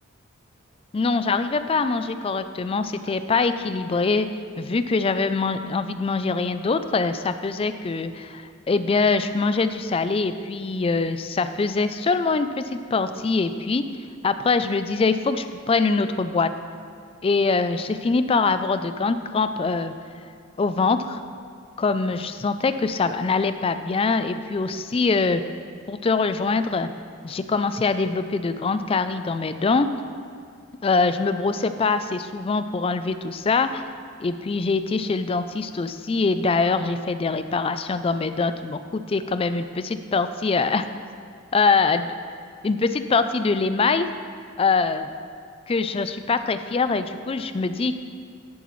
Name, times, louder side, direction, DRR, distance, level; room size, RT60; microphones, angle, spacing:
voice 1, 0.9-4.3 4.6-13.8 14.2-16.5 17.2-19.9 20.6-21.2 21.8-25.4 25.9-26.9 27.2-29.9 30.8-33.8 34.2-40.9 41.5-42.1 42.6-44.1 44.6-45.1 45.7-47.9, left 4 dB, 25° left, 11 dB, 0.3 m, -23 dB
12.0 x 11.0 x 3.1 m, 2.2 s
head